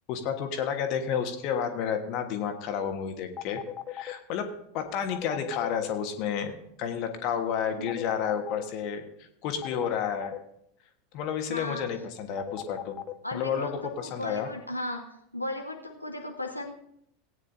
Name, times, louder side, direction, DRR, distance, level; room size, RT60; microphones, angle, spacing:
voice 1, 0.1-3.6 3.9-10.3 11.1-13.0 13.3-14.5, left 7 dB, 45° left, 6 dB, 1.5 m, -31 dB
sound 1, 3.4-4.1 5.1-5.9 7.9-8.6 9.6-10.4 12.4-13.1, left 11 dB, 30° left, 0.8 m, -36 dB
voice 2, 11.5-11.9 13.2-15.0 15.3-16.7, left 1 dB, 90° left, 1 dB, 1.0 m, -36 dB
18.0 x 9.4 x 2.7 m, 0.74 s
figure-of-eight pair, 85°, 0 cm